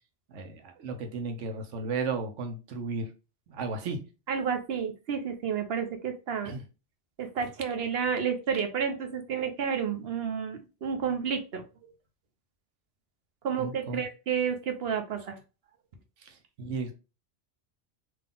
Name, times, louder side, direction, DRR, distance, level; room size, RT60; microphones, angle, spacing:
voice 1, 0.3-3.1 3.5-4.0 6.4-6.6 13.6-14.0 16.3-17.0, right 3 dB, 90° right, 5 dB, 1.1 m, -34 dB
voice 2, 4.3-6.5 7.2-11.6 13.4-15.4, right 7 dB, 60° right, 6 dB, 0.9 m, -30 dB
3.7 x 2.8 x 3.7 m, 0.32 s
omnidirectional pair, 1.2 m